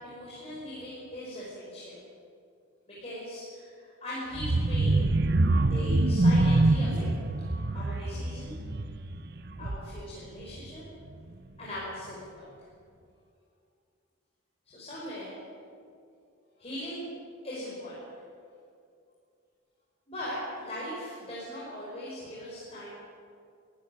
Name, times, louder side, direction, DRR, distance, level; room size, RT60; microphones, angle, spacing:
voice 1, 0.0-2.0 2.9-5.1 5.6-7.1 7.7-8.5 9.6-10.8 11.6-12.4 14.7-15.4 16.6-17.1 17.4-18.0 20.1-22.9, left 1 dB, 30° left, -7 dB, 5.5 m, -39 dB
sound 1, 4.3-10.1 10.5-10.8 11.1-11.2, right 2 dB, 50° right, 0.8 m, -25 dB
22.5 x 15.0 x 9.3 m, 2.4 s
head